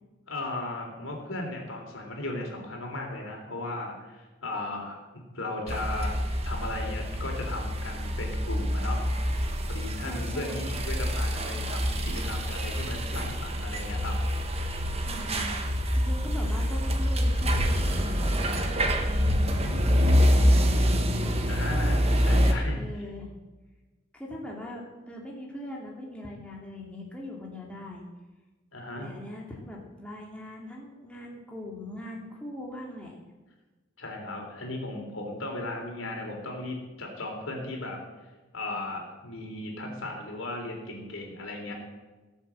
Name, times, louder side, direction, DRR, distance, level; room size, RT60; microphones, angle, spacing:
voice 1, 0.3-6.2 6.4-9.0 9.7-14.2 14.5-14.6 21.5-23.0 28.7-29.1 34.0-38.0 38.5-41.7, left 2 dB, 80° left, 1 dB, 3.8 m, -36 dB
sound 1, 5.7-22.5, equal, 30° right, 1.4 m, -26 dB
voice 2, 10.0-10.7 15.0-15.5 15.9-21.6 22.8-23.3 24.1-28.1 29.0-33.2, left 1 dB, 5° left, -2 dB, 2.6 m, -40 dB
17.5 x 7.5 x 7.6 m, 1.2 s
head